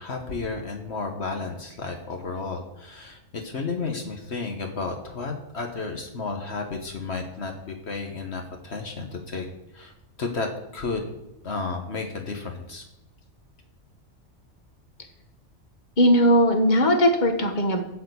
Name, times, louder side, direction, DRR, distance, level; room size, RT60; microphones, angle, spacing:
voice 1, 0.0-9.5 9.7-9.9 10.2-11.0 11.4-12.8, left 4 dB, 65° left, 3 dB, 1.5 m, -32 dB
voice 2, 16.0-17.8, equal, 40° left, 5 dB, 1.5 m, -19 dB
13.5 x 4.7 x 8.1 m, 0.90 s
omnidirectional pair, 1.2 m